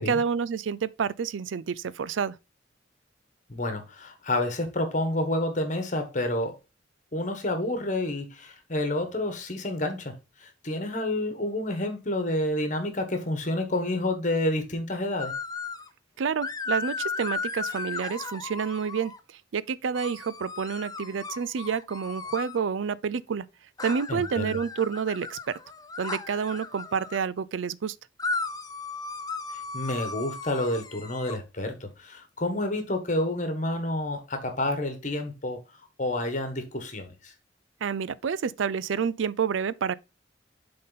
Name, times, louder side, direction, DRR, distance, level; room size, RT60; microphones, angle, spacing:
voice 1, 0.0-2.4 16.2-19.1 19.5-23.5 23.8-25.6 26.0-28.0 37.8-39.9, right 6 dB, 85° right, 0.4 m, -29 dB
voice 2, 3.5-6.6 7.1-10.1 10.4-15.3 24.1-24.6 29.5-35.6 36.0-37.3, left 1 dB, 40° left, 1.3 m, -29 dB
sound 1, 15.2-15.9 16.4-19.2 19.9-22.6 23.8-27.2 28.2-31.4, left 4 dB, 20° left, 0.5 m, -35 dB
7.5 x 3.9 x 4.0 m
head